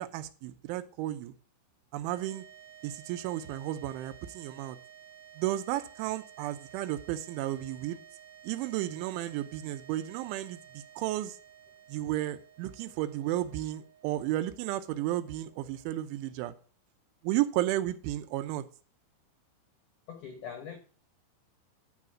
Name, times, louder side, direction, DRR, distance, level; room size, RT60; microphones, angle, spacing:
voice 1, 0.0-1.3 1.9-2.4 2.8-4.8 5.4-8.0 8.4-11.4 11.9-16.5 17.2-18.7, right 14 dB, 90° right, 3.1 m, -33 dB
sound 1, 2.0-16.5, right 9 dB, 5° right, 2.2 m, -54 dB
voice 2, 20.1-20.8, left 7 dB, 75° left, 1.9 m, -42 dB
11.0 x 5.0 x 5.9 m
omnidirectional pair, 5.4 m